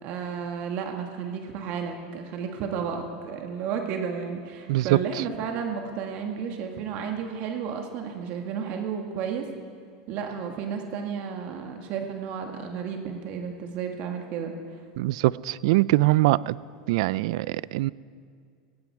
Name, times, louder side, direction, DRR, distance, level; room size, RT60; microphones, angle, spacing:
voice 1, 0.0-9.5 10.1-14.5, right 6 dB, 50° right, 3 dB, 1.7 m, -32 dB
voice 2, 15.0-16.6 16.9-17.9, right 18 dB, 65° right, 21 dB, 0.4 m, -23 dB
17.0 x 16.0 x 4.7 m, 2.2 s
supercardioid pair, 125°, 3 cm